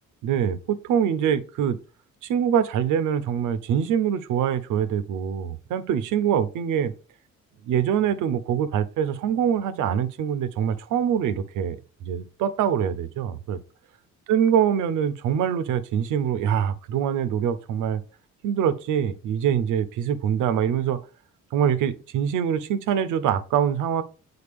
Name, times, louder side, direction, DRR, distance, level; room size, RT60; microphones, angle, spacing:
voice 1, 0.2-1.8 2.2-6.9 7.6-13.6 14.3-18.0 18.4-21.0 21.5-24.0, right 8 dB, 85° right, 0.7 m, -24 dB
6.9 x 3.9 x 3.5 m
cardioid pair, 90°, 30 cm